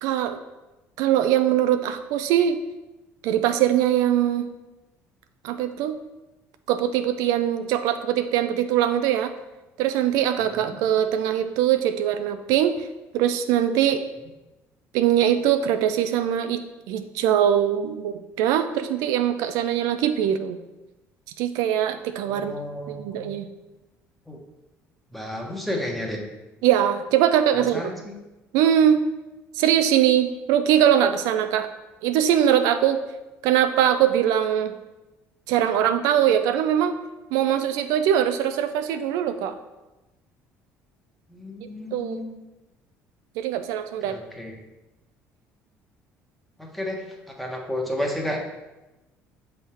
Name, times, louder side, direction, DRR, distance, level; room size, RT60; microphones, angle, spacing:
voice 1, 0.0-0.4 1.0-2.6 3.2-4.5 5.4-6.0 6.7-9.3 9.8-12.9 13.1-14.1 14.9-16.6 16.9-20.6 21.4-22.5 22.9-23.5 26.6-27.8 28.5-29.0 29.6-31.7 32.0-33.0 33.4-34.7 35.5-37.0 37.3-39.6 41.9-42.2 43.4-44.2, right 10 dB, 75° right, 9 dB, 0.4 m, -22 dB
voice 2, 22.3-23.3 24.3-24.4 25.1-26.2 27.7-28.1 41.3-42.3 44.1-44.5 46.6-47.0 47.4-48.4, left 1 dB, ahead, 0 dB, 1.3 m, -32 dB
6.3 x 3.5 x 4.4 m, 1.1 s
supercardioid pair, 80°, 6 cm